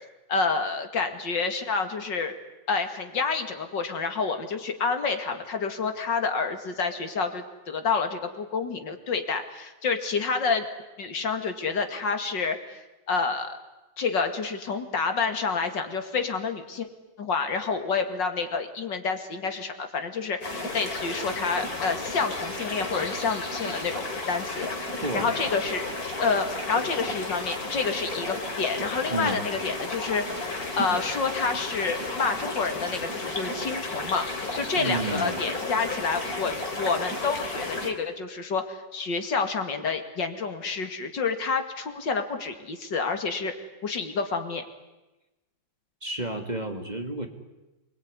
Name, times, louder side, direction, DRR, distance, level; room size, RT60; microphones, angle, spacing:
voice 1, 0.3-2.3 2.7-10.7 11.0-12.8 13.1-13.6 14.0-16.9 17.2-25.9 26.1-30.2 30.8-43.5 43.8-44.6, left 4 dB, 65° left, 7 dB, 2.8 m, -28 dB
sound 1, 20.4-37.9, left 2 dB, 50° left, 3.9 m, -33 dB
voice 2, 25.0-25.3 29.1-29.4 34.7-35.4 46.0-47.3, right 2 dB, 20° right, 5 dB, 2.3 m, -31 dB
27.5 x 21.5 x 9.7 m, 1.1 s
omnidirectional pair, 2.1 m